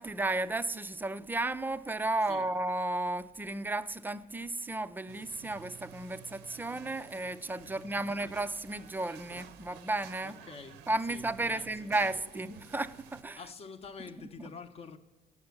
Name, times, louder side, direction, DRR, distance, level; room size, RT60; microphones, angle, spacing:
voice 1, 0.0-10.3 10.9-13.4, right 2 dB, 10° right, 0.4 m, -33 dB
sound 1, 5.1-13.2, right 8 dB, 90° right, 0.7 m, -52 dB
voice 2, 7.7-8.2 10.2-11.9 13.4-15.0, left 5 dB, 35° left, 0.8 m, -48 dB
9.6 x 6.7 x 7.0 m
cardioid pair, 110°, 17 cm